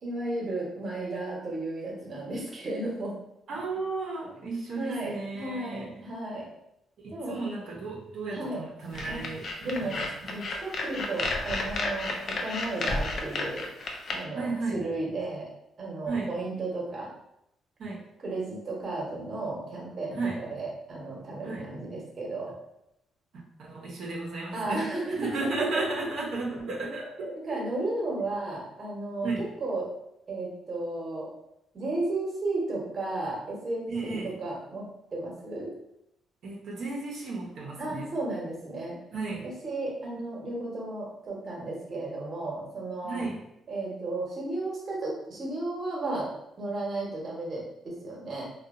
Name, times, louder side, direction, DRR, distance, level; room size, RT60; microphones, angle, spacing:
voice 1, 0.0-3.1 4.7-6.5 7.1-7.4 8.3-8.6 9.1-9.2 9.6-10.0 10.3-13.7 14.1-15.5 15.8-17.1 18.2-22.5 24.5-25.3 25.6-25.8 27.4-29.9 30.3-31.3 31.7-35.7 37.8-39.0 39.4-43.2 43.7-46.3 46.6-48.4, right 2 dB, 45° right, -3 dB, 0.9 m, -34 dB
voice 2, 3.5-5.9 7.0-10.1 14.3-14.8 16.1-16.3 17.8-18.0 20.2-20.4 21.4-21.7 23.6-24.9 25.2-27.6 29.2-29.4 33.9-34.3 36.4-38.1 39.1-39.5 43.0-43.4, right 3 dB, 70° right, -3 dB, 0.6 m, -34 dB
sound 1, 8.9-14.1, left 2 dB, 55° left, 0.4 m, -32 dB
2.7 x 2.2 x 2.4 m, 0.81 s
cardioid pair, 90°, 0 cm